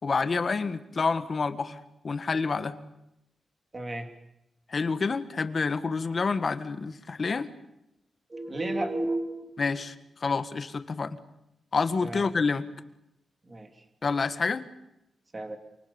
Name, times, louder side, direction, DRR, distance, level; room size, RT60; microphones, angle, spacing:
voice 1, 0.0-1.8 2.0-2.8 4.7-7.5 9.6-9.9 10.2-11.2 11.7-12.6 14.0-14.7, left 4 dB, 40° left, 10 dB, 1.6 m, -28 dB
voice 2, 3.7-4.1 8.3-9.5 12.0-12.2 13.5-13.7 15.3-15.6, right 1 dB, 25° right, 5 dB, 2.8 m, -32 dB
28.0 x 26.0 x 7.1 m, 0.88 s
wide cardioid pair, 135°, 0 cm